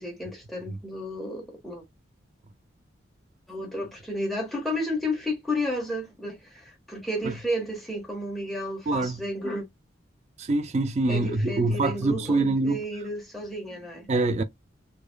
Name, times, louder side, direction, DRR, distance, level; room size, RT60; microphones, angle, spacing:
voice 1, 0.0-1.8 3.5-9.6 11.1-14.1, left 1 dB, ahead, 1.2 m, -32 dB
voice 2, 8.9-9.2 10.4-12.8 14.1-14.4, right 2 dB, 35° right, 0.3 m, -25 dB
4.8 x 2.3 x 2.2 m
head